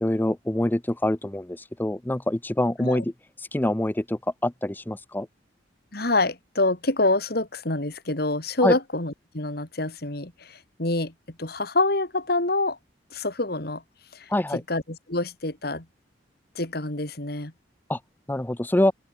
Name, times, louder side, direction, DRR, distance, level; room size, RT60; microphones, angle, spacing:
voice 1, 0.0-5.3 8.6-8.8 14.3-14.6 17.9-18.0 18.3-18.9, left 1 dB, 10° left, 0.5 m, -25 dB
voice 2, 5.9-12.8 13.1-13.8 14.1-14.3 14.7-15.9 16.5-17.5, left 2 dB, 55° left, 3.1 m, -26 dB
open air
head